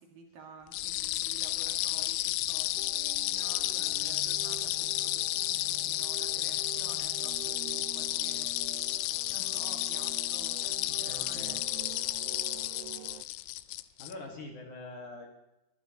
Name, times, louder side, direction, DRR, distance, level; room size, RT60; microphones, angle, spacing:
voice 1, 0.0-8.5 9.3-11.6, right 4 dB, 60° right, 2 dB, 3.3 m, -51 dB
sound 1, 0.7-14.1, left 17 dB, 90° left, 3.0 m, -32 dB
sound 2, 2.8-13.2, right 15 dB, 80° right, 2.5 m, -47 dB
voice 2, 11.1-11.5 14.0-15.3, left 2 dB, 55° left, 1 dB, 2.5 m, -44 dB
23.5 x 12.0 x 2.9 m, 0.96 s
omnidirectional pair, 5.2 m